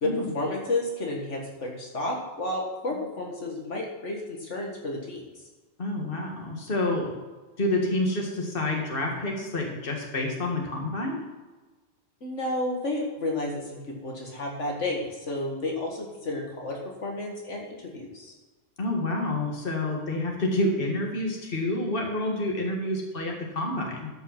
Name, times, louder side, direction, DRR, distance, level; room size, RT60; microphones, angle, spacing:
voice 1, 0.0-5.2 12.2-18.3, left 2 dB, 70° left, 0 dB, 2.0 m, -31 dB
voice 2, 5.8-7.2 7.6-11.2 18.8-24.1, left 1 dB, 45° left, 0 dB, 2.0 m, -28 dB
13.0 x 5.5 x 5.9 m, 1.3 s
omnidirectional pair, 1.3 m